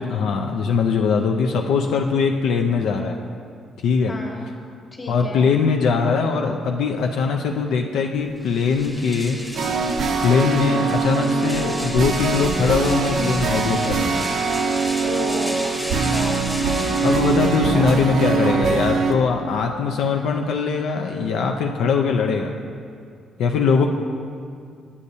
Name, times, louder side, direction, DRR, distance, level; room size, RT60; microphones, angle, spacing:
voice 1, 0.0-3.2 3.8-4.1 5.1-9.4 10.2-14.2 17.0-22.5 23.4-23.9, left 5 dB, 80° left, 2 dB, 0.4 m, -21 dB
voice 2, 4.1-4.5 4.9-5.5 15.0-15.6 15.9-16.4 17.7-18.9, left 2 dB, 35° left, -1 dB, 1.4 m, -33 dB
sound 1, 8.4-18.0, equal, 5° left, 0.8 m, -34 dB
sound 2, 9.6-19.1, right 4 dB, 70° right, 0.5 m, -22 dB
8.4 x 8.3 x 2.7 m, 2.3 s
cardioid pair, 90°, 0 cm